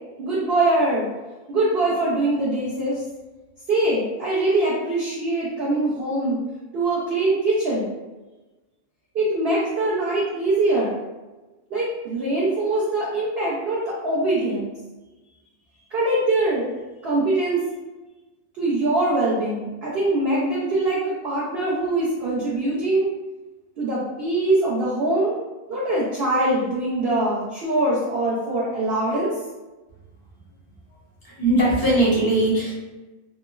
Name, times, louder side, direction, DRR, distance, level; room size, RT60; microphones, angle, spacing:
voice 1, 0.2-1.1 1.5-3.0 3.7-6.4 6.7-7.9 9.1-11.0 11.7-14.7 15.9-16.7 17.0-17.6 18.6-23.1 23.8-25.3 25.7-29.3, right 2 dB, 65° right, -6 dB, 0.6 m, -23 dB
voice 2, 31.2-32.7, right 1 dB, 25° left, -8 dB, 0.5 m, -20 dB
3.0 x 2.0 x 2.2 m, 1.1 s
omnidirectional pair, 1.6 m